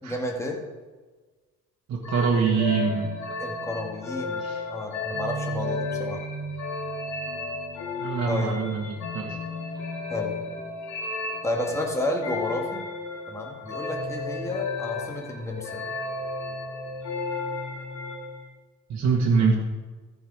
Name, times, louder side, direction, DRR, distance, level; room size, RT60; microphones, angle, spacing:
voice 1, 0.0-0.6 3.4-6.2 8.3-8.6 10.1-10.6 11.4-12.8 13.3-15.8, left 1 dB, 10° left, 0 dB, 2.2 m, -31 dB
voice 2, 1.9-3.1 4.4-4.6 8.0-9.4 18.9-19.5, right 5 dB, 65° right, -2 dB, 1.7 m, -24 dB
sound 1, 2.0-18.4, left 3 dB, 70° left, 2.6 m, -33 dB
14.0 x 5.5 x 4.9 m, 1.3 s
cardioid pair, 90°, 30 cm